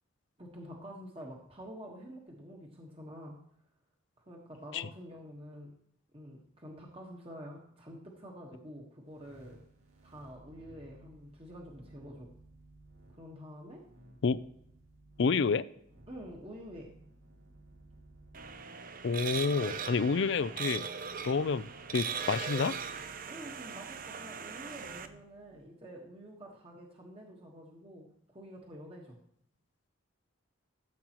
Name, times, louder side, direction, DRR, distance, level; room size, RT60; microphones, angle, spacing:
voice 1, 0.4-3.4 4.3-5.7 6.1-9.6 10.0-12.3 13.2-13.8 16.1-16.9 23.3-29.2, equal, 25° right, -1 dB, 1.4 m, -48 dB
sound 1, 9.0-25.7, right 2 dB, 75° right, 2.3 m, -59 dB
voice 2, 15.2-15.6 19.0-20.9 21.2-22.7, left 5 dB, 55° left, 17 dB, 0.4 m, -29 dB
sound 2, 18.3-25.1, right 6 dB, 40° right, 0.6 m, -39 dB
14.0 x 7.8 x 3.0 m, 0.71 s
head